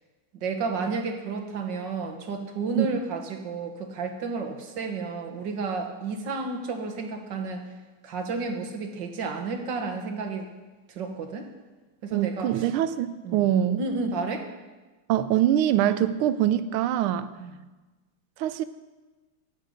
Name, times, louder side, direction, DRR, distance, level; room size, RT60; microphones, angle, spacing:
voice 1, 0.4-7.7 8.0-10.5 10.9-11.5 12.0-12.7 13.2-13.5 13.8-14.5 17.4-17.5, right 4 dB, 60° right, 4 dB, 1.7 m, -31 dB
voice 2, 12.1-13.8 15.1-17.3 18.4-18.6, right 11 dB, 80° right, 13 dB, 1.4 m, -24 dB
13.0 x 9.6 x 5.1 m, 1.2 s
omnidirectional pair, 2.4 m